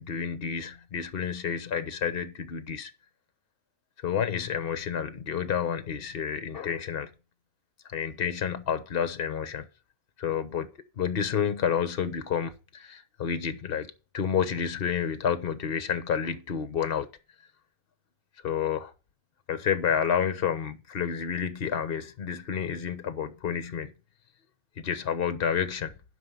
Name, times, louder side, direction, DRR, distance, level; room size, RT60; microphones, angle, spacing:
voice 1, 0.0-2.9 4.0-7.1 7.9-9.7 10.2-10.7 11.0-17.1 18.4-18.9 19.5-23.9 24.8-25.9, left 7 dB, 45° left, 1.1 m, -30 dB
11.5 x 5.5 x 5.6 m
omnidirectional pair, 1.5 m